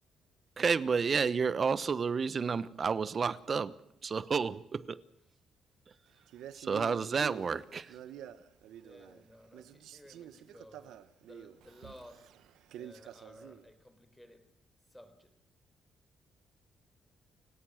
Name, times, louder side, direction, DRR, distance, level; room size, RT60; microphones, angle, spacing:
voice 1, 0.6-5.0 6.5-8.0, right 5 dB, 40° right, 1.1 m, -31 dB
Male speech man speaking, 6.3-9.3 9.5-13.7, right 10 dB, 85° right, 1.1 m, -49 dB
voice 2, 8.8-10.9 11.2-12.3 12.7-14.4 14.9-15.3, left 1 dB, 5° left, 4.1 m, -55 dB
30.0 x 17.5 x 6.5 m
cardioid pair, 90°, 0 cm